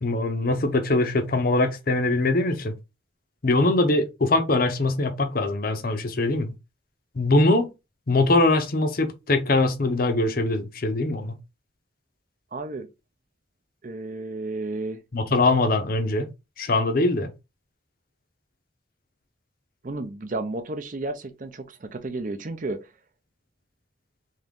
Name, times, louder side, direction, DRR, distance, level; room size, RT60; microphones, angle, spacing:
voice 1, 0.0-2.7 3.4-6.5 7.2-7.7 8.1-11.4 15.1-16.3 16.6-17.3, left 2 dB, 50° left, 0.6 m, -22 dB
voice 2, 12.5-12.9 13.8-15.0 19.8-21.5 21.9-22.8, right 2 dB, 40° right, 0.6 m, -32 dB
3.6 x 2.7 x 3.5 m
head